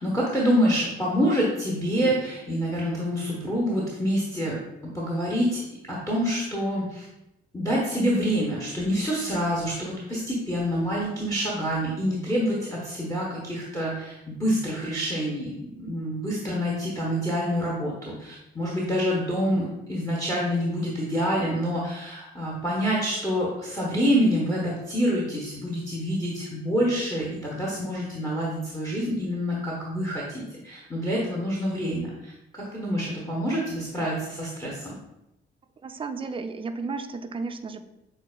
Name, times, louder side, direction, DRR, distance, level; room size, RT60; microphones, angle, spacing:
voice 1, 0.0-4.6 4.8-5.6 5.9-7.1 7.5-34.9, equal, 10° left, -3 dB, 1.0 m, -27 dB
voice 2, 35.8-37.8, right 4 dB, 20° right, 8 dB, 0.4 m, -33 dB
7.4 x 2.5 x 2.3 m, 0.87 s
figure-of-eight pair, 40°, 31 cm